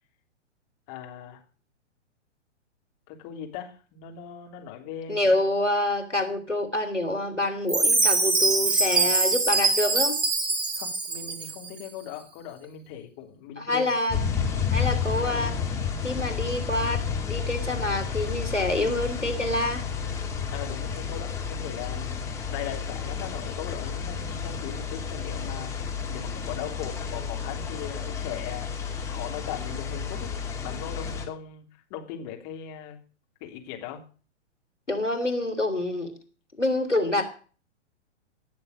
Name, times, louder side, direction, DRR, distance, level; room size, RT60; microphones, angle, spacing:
voice 1, 0.9-1.4 3.1-5.3 10.8-14.0 20.5-25.7 26.1-28.7 29.1-30.3 30.6-31.6 31.9-33.0 33.4-34.0, left 9 dB, 30° left, 2 dB, 3.3 m, -39 dB
voice 2, 5.1-10.2 13.6-14.2 14.7-15.6 16.0-19.9 34.9-36.1 36.6-37.2, left 2 dB, 85° left, 6 dB, 3.4 m, -27 dB
Chime, 7.7-11.7, right 3 dB, 15° right, 1.3 m, -23 dB
sound 1, 14.1-31.3, left 6 dB, 10° left, 2.6 m, -31 dB
17.5 x 7.3 x 6.5 m, 0.39 s
figure-of-eight pair, 115°, 35 cm